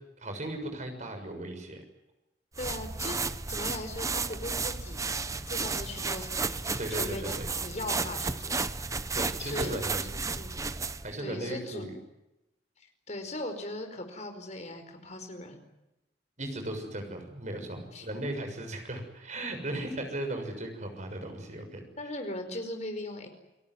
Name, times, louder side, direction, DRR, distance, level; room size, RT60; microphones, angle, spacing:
voice 1, 0.2-1.8 6.8-7.5 9.1-10.1 11.0-11.9 16.4-21.8, right 1 dB, 40° right, 5 dB, 6.7 m, -36 dB
sound 1, 2.5-11.1, right 4 dB, 20° right, 0.8 m, -33 dB
voice 2, 2.6-3.2 3.5-5.0 5.5-6.4 6.6-8.6 9.4-9.8 10.3-10.6 11.2-11.9 12.8-15.6 17.9-18.2 22.0-23.3, left 1 dB, 40° left, 6 dB, 4.8 m, -39 dB
29.0 x 18.5 x 9.5 m, 0.94 s
head